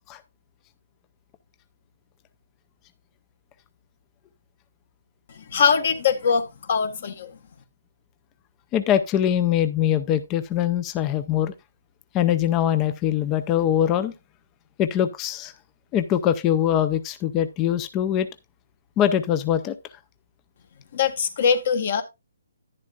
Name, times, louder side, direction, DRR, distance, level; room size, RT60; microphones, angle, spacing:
voice 1, 5.3-7.3 20.9-22.0, left 6 dB, 50° left, 1.4 m, -22 dB
voice 2, 8.7-11.5 12.1-14.1 14.8-15.5 15.9-18.3 19.0-19.7, left 10 dB, 20° left, 0.5 m, -22 dB
10.5 x 10.5 x 2.4 m
hypercardioid pair, 165°, 0 cm